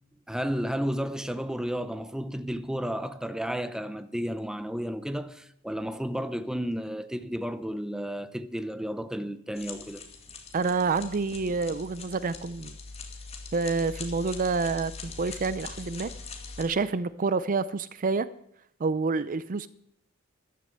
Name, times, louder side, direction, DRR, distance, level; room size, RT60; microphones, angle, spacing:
voice 1, 0.3-10.0, equal, 5° right, 0.7 m, -32 dB
sound 1, 9.6-16.6, left 4 dB, 30° left, 2.3 m, -42 dB
voice 2, 10.5-12.7 13.5-16.1 16.6-18.3 18.8-19.7, right 4 dB, 40° right, 0.5 m, -28 dB
13.5 x 11.0 x 7.7 m
head